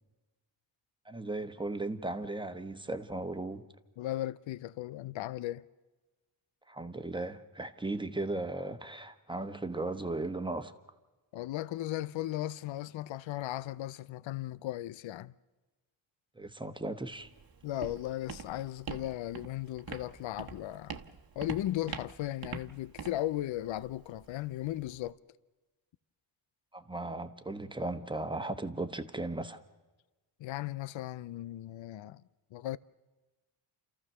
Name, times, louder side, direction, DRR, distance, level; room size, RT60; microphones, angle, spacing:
voice 1, 1.0-3.7 6.7-10.7 16.3-17.3 26.7-29.6, right 2 dB, 10° right, 1.2 m, -36 dB
voice 2, 4.0-5.7 11.3-15.3 17.6-21.0 21.4-25.2 30.4-32.2 32.5-32.8, left 14 dB, 75° left, 0.6 m, -36 dB
Walk footsteps, 17.1-25.1, right 6 dB, 50° right, 1.3 m, -45 dB
30.0 x 14.0 x 6.8 m
cardioid pair, 75°, 46 cm